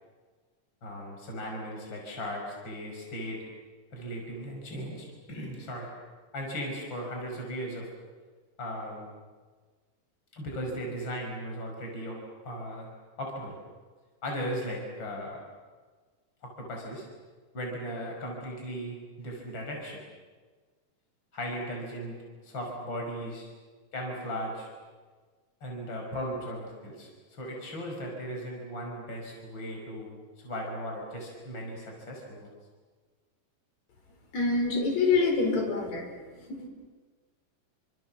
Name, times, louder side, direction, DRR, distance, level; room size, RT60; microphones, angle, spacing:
voice 1, 0.8-3.4 3.9-5.9 6.3-7.9 8.6-9.1 10.3-12.2 12.4-12.9 13.2-13.5 14.2-15.4 16.4-17.1 17.5-20.0 21.3-22.2 22.4-23.5 23.9-24.7 25.6-32.5, equal, 35° left, 0 dB, 6.2 m, -37 dB
voice 2, 34.3-36.1 36.3-36.7, left 4 dB, 55° left, 1 dB, 6.2 m, -26 dB
29.0 x 27.0 x 7.5 m, 1.4 s
omnidirectional pair, 3.8 m